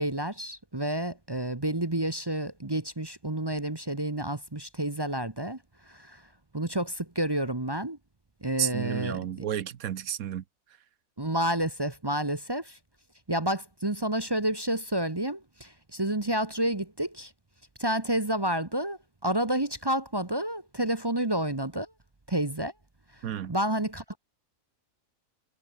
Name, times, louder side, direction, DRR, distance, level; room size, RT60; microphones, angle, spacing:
voice 1, 0.0-5.6 5.9-6.2 6.5-8.0 8.4-9.2 11.2-12.8 13.3-17.3 17.8-21.9 22.3-22.7 23.5-24.2, right 1 dB, 20° right, 1.1 m, -29 dB
voice 2, 8.6-10.4 23.2-23.5, right 10 dB, 85° right, 1.4 m, -31 dB
omnidirectional pair, 1.5 m